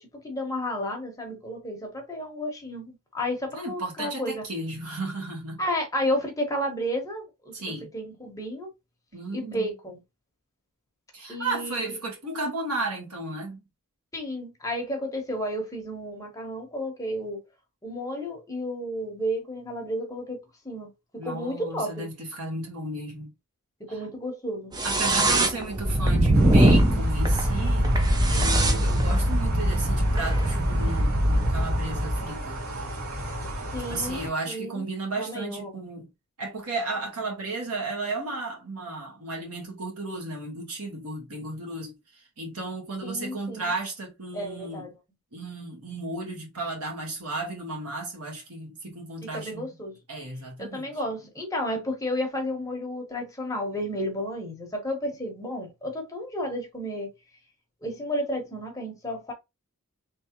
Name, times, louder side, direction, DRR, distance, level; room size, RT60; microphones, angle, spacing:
voice 1, 0.0-4.4 5.6-7.5 7.9-8.7 9.3-10.0 11.3-11.9 14.1-17.4 17.8-22.1 23.8-24.7 33.7-34.8 35.2-35.8 43.0-43.7 44.3-44.9 49.2-50.0 50.6-57.1 57.8-59.3, equal, 15° left, 1.0 m, -32 dB
voice 2, 3.5-5.6 7.5-7.9 9.1-9.7 11.1-13.6 21.2-23.3 23.9-24.0 24.8-27.9 28.3-32.6 33.9-36.1 36.4-44.9 45.3-49.7 50.1-51.0, right 2 dB, 85° right, 1.7 m, -34 dB
sound 1, 24.7-32.3, right 1 dB, 20° right, 0.5 m, -22 dB
sound 2, 26.3-34.3, right 1 dB, 70° right, 2.2 m, -34 dB
3.3 x 3.2 x 2.9 m
head